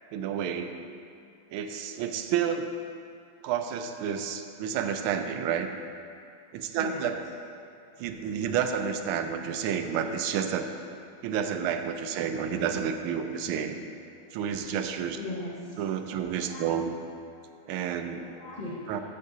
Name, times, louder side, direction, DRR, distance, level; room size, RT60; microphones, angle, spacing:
voice 1, 0.1-0.7 1.5-2.7 3.4-5.7 6.5-7.3 8.0-10.7 11.2-13.8 14.3-15.2 15.8-17.0 17.7-18.2 18.9-19.0, right 8 dB, 80° right, 7 dB, 1.4 m, -30 dB
voice 2, 6.7-7.0 11.5-11.7 12.5-12.6 14.5-14.7 15.1-15.8 16.1-16.7 18.1-19.0, left 2 dB, 35° left, -9 dB, 0.8 m, -40 dB
13.5 x 7.5 x 2.7 m, 2.5 s
omnidirectional pair, 2.4 m